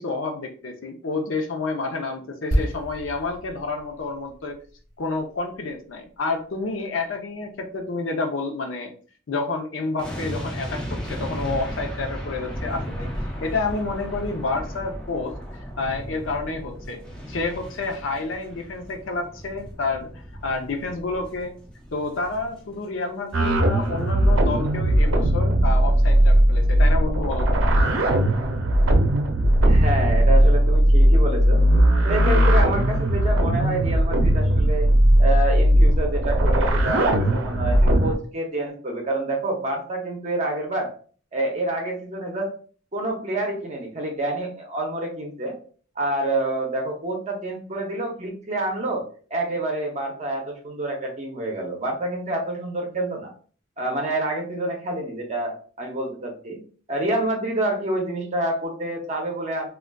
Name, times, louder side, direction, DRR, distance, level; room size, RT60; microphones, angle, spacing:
voice 1, 0.0-4.6 5.0-8.9 9.3-13.1 13.4-17.0 17.3-21.5 21.9-27.6, left 3 dB, 75° left, 4 dB, 0.6 m, -29 dB
sound 1, 2.5-6.2 6.4-6.6, equal, 55° left, 1.1 m, -30 dB
sound 2, 10.0-23.1 23.4-23.6, equal, 5° left, 0.6 m, -35 dB
sound 3, 23.3-38.1, right 1 dB, 85° right, 0.5 m, -18 dB
voice 2, 29.6-31.6 32.0-34.9 35.2-40.9 41.3-42.5 42.9-45.6 46.0-49.0 49.3-53.3 53.8-56.6 56.9-59.7, right 1 dB, 35° right, 1 dB, 0.6 m, -27 dB
3.7 x 2.3 x 2.2 m, 0.42 s
head